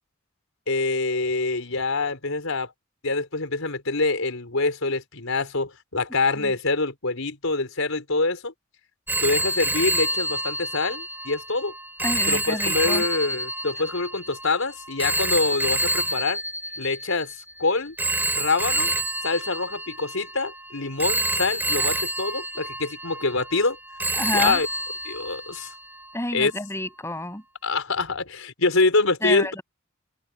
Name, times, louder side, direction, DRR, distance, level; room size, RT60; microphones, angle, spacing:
voice 1, 0.7-2.7 3.0-8.5 9.2-11.7 12.3-16.4 16.8-17.3 17.6-17.9 18.4-18.9 19.2-23.8 24.3-24.7 25.0-25.7 26.3-26.5 27.6-29.5, left 3 dB, 85° left, 4.3 m, -25 dB
Telephone, 9.1-17.4 18.0-20.5 21.0-23.7 24.0-25.7, right 2 dB, 10° right, 3.9 m, -27 dB
voice 2, 12.0-13.0 24.2-24.6 26.1-27.4 29.2-29.6, left 1 dB, 15° left, 7.4 m, -29 dB
open air
head